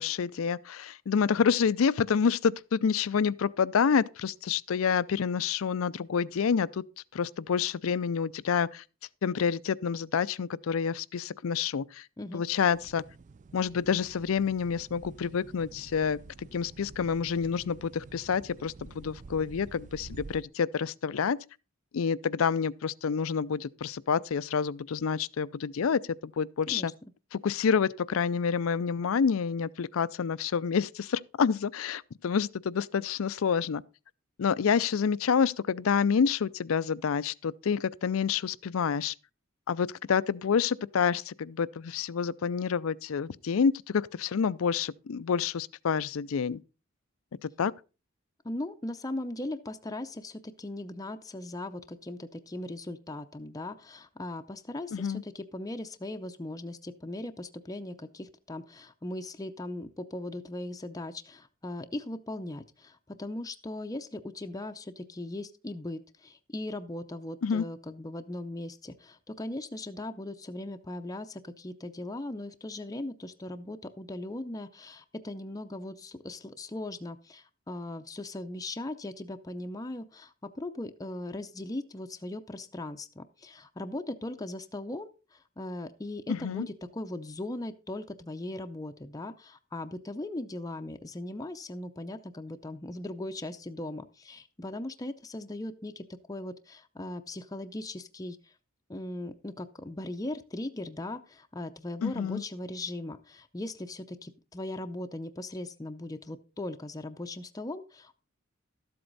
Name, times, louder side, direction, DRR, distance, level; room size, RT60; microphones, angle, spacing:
voice 1, 0.0-6.8 7.1-8.8 9.2-12.0 12.3-13.0 13.5-16.2 16.5-21.4 21.9-26.0 26.4-26.9 27.3-33.8 34.4-39.1 39.7-46.6 47.4-47.7 54.9-55.2 67.4-67.7 86.3-86.7 102.0-102.4, left 6 dB, 75° left, 0.4 m, -28 dB
sound 1, 12.7-20.4, right 3 dB, 35° right, 0.4 m, -49 dB
voice 2, 48.4-98.5 98.9-108.2, left 1 dB, 15° left, 0.6 m, -39 dB
13.0 x 7.8 x 4.0 m
head